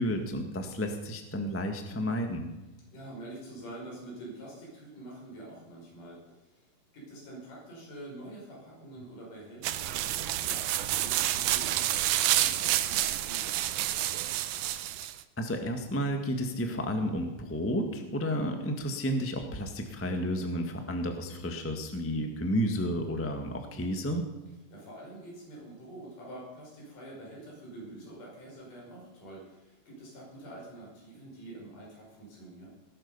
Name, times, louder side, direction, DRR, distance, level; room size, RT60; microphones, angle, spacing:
voice 1, 0.0-2.5 14.5-14.8 15.4-24.2, equal, 10° left, 5 dB, 0.6 m, -31 dB
voice 2, 2.9-13.8 24.7-32.7, right 1 dB, 75° left, -3 dB, 7.2 m, -46 dB
sound 1, 9.6-15.2, right 13 dB, 75° right, 2.0 m, -29 dB
19.5 x 12.0 x 5.6 m, 1.0 s
omnidirectional pair, 3.7 m